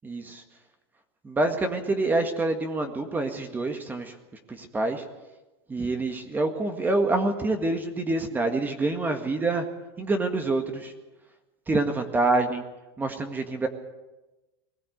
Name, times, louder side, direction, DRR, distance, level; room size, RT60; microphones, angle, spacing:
voice 1, 0.0-0.4 1.2-4.1 4.5-5.0 5.7-9.6 10.0-10.9 11.7-12.6 13.0-13.7, right 2 dB, 15° right, 6 dB, 1.8 m, -26 dB
21.0 x 16.5 x 8.0 m, 1.1 s
supercardioid pair, 140°, 13 cm